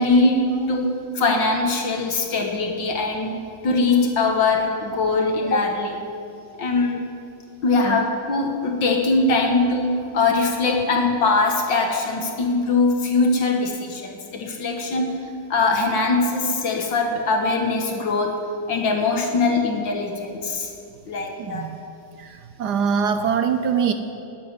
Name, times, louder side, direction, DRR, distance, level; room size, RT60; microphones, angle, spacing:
voice 1, 0.0-0.4 0.7-6.0 6.6-7.1 7.6-15.1 15.5-18.4 18.7-20.7 21.1-21.7, left 3 dB, 65° left, 2 dB, 2.1 m, -21 dB
voice 2, 21.4-21.8 22.2-23.9, right 6 dB, 65° right, 8 dB, 1.1 m, -23 dB
13.5 x 10.0 x 9.6 m, 2.6 s
omnidirectional pair, 2.2 m